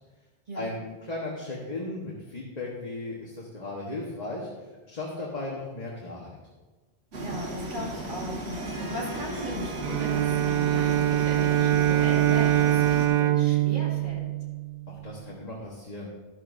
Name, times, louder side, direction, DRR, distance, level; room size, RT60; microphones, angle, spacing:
voice 1, 0.5-4.5 4.9-6.4 14.9-16.1, left 2 dB, 40° left, -4 dB, 1.5 m, -36 dB
sound 1, 7.1-13.1, right 1 dB, 85° right, 1.7 m, -35 dB
voice 2, 7.2-14.3, equal, 50° right, -4 dB, 2.6 m, -38 dB
Harp, 8.5-14.0, right 1 dB, 30° right, 0.9 m, -45 dB
Bowed string instrument, 9.8-15.1, right 13 dB, 70° right, 0.9 m, -24 dB
12.5 x 11.5 x 2.7 m, 1.3 s
omnidirectional pair, 1.1 m